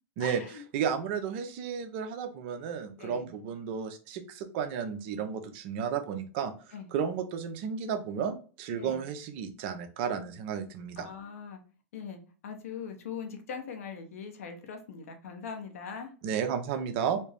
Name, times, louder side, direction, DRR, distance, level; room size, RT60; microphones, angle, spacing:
voice 1, 0.2-0.6 3.0-3.3 6.7-6.9 8.7-9.0 11.0-11.6 11.9-16.1, left 6 dB, 85° left, 4 dB, 0.8 m, -41 dB
voice 2, 0.7-6.5 6.9-11.1 16.2-17.2, right 7 dB, 55° right, 7 dB, 0.6 m, -33 dB
4.2 x 2.0 x 3.3 m, 0.38 s
hypercardioid pair, 125°, 8 cm